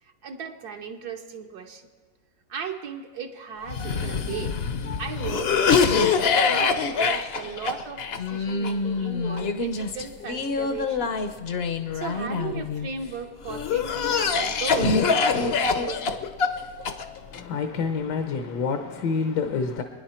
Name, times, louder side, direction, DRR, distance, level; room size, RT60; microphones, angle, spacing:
voice 1, 0.2-1.9 2.5-4.5 5.0-5.6 5.9-11.2 11.9-16.2, right 6 dB, 70° right, 1.4 m, -36 dB
Cough, 3.7-12.9 13.5-17.4, left 5 dB, 50° left, 0.8 m, -25 dB
voice 2, 17.3-19.8, left 5 dB, 80° left, 1.5 m, -27 dB
28.0 x 10.0 x 4.4 m
omnidirectional pair, 1.8 m